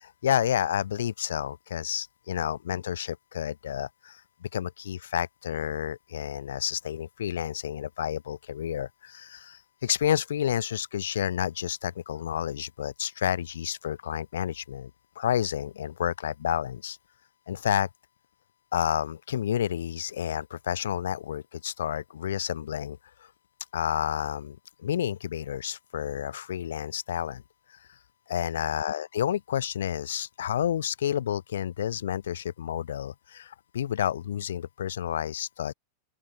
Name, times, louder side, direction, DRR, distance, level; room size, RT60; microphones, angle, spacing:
voice 1, 0.0-14.9 15.2-17.0 17.5-17.9 18.7-23.0 23.7-27.4 28.3-35.7, left 10 dB, 65° left, 0.6 m, -30 dB
open air
figure-of-eight pair, 90°, 0 cm